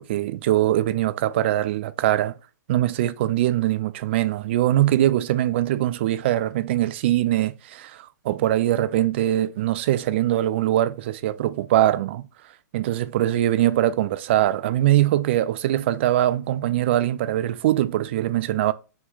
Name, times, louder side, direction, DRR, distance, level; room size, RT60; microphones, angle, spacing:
voice 1, 0.0-2.3 2.7-12.3 12.7-18.7, right 13 dB, 35° right, 0.3 m, -22 dB
5.9 x 2.1 x 3.8 m
hypercardioid pair, 160°, 10 cm